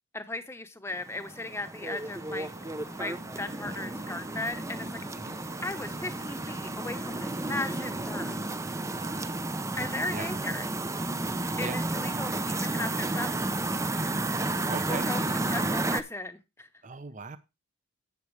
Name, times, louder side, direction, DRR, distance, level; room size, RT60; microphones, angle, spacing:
voice 1, 0.1-2.5 3.0-4.9 5.6-8.3 9.8-10.6 11.6-13.5 14.7-16.7, left 2 dB, 10° left, 1.0 m, -37 dB
sound 1, 0.9-16.0, right 2 dB, 15° right, 0.6 m, -32 dB
sound 2, 2.0-8.5, left 3 dB, 55° left, 0.9 m, -52 dB
voice 2, 8.9-9.5 10.1-10.4 11.3-11.8 14.6-15.1 16.8-17.4, right 3 dB, 35° right, 0.8 m, -40 dB
11.5 x 8.4 x 3.2 m
head